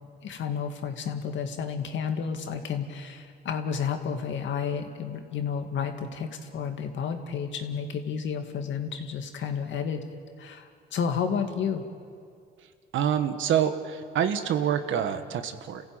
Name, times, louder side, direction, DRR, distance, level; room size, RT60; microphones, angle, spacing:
voice 1, 0.2-10.0 10.4-11.8, left 6 dB, 70° left, 5 dB, 2.2 m, -31 dB
voice 2, 12.9-15.8, right 9 dB, 80° right, 9 dB, 1.5 m, -26 dB
29.0 x 15.5 x 9.0 m, 2.3 s
cardioid pair, 90°, 20 cm